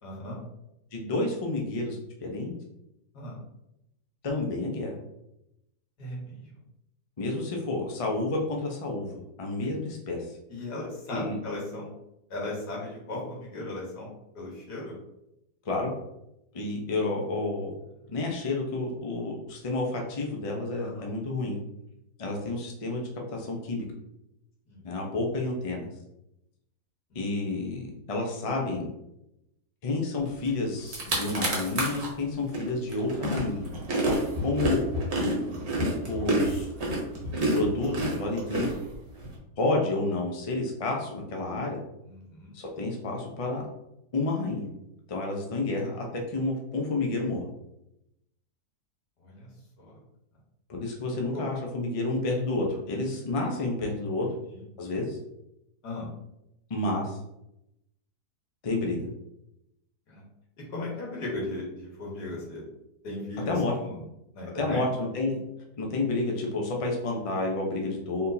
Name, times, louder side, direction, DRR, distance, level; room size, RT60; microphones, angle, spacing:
voice 1, 0.0-0.4 3.1-3.4 6.0-6.5 10.5-11.9 12.3-15.0 20.8-21.1 24.7-24.8 27.1-27.3 42.0-42.5 49.2-49.5 49.8-50.0 51.3-51.4 54.2-54.6 55.8-56.1 60.1-60.2 60.7-62.6 63.0-64.0 64.3-64.8, left 2 dB, 80° left, -3 dB, 1.9 m, -37 dB
voice 2, 0.9-2.5 4.2-5.0 7.2-10.3 11.1-11.4 15.6-15.9 16.5-17.7 18.1-21.6 22.2-23.9 24.8-25.8 27.1-28.9 29.8-33.7 34.1-34.8 36.1-36.7 37.5-38.7 39.6-41.8 42.5-43.7 44.1-44.7 45.1-47.5 50.7-54.3 54.8-55.2 56.7-57.2 58.6-59.1 63.5-63.7 64.5-65.4 65.8-68.3, left 2 dB, 40° left, 0 dB, 0.4 m, -30 dB
sound 1, 30.5-30.6 30.8-32.1 32.5-39.3, right 1 dB, 45° right, 1.2 m, -28 dB
4.4 x 3.6 x 2.7 m, 0.86 s
omnidirectional pair, 1.7 m